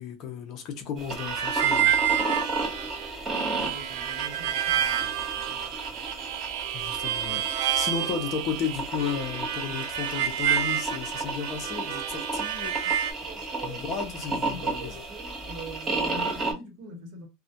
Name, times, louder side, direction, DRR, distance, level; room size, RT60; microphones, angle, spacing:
voice 1, 0.0-1.9 6.7-13.3 13.6-14.9, left 6 dB, 35° left, 0.5 m, -34 dB
sound 1, 1.0-16.5, right 2 dB, 15° right, 0.7 m, -33 dB
Harmonica, 1.2-13.1, right 11 dB, 70° right, 0.4 m, -29 dB
voice 2, 3.6-6.1 12.8-12.9 13.2-17.3, right 2 dB, 50° right, 0.9 m, -43 dB
2.3 x 2.1 x 2.7 m
supercardioid pair, 165°, 0 cm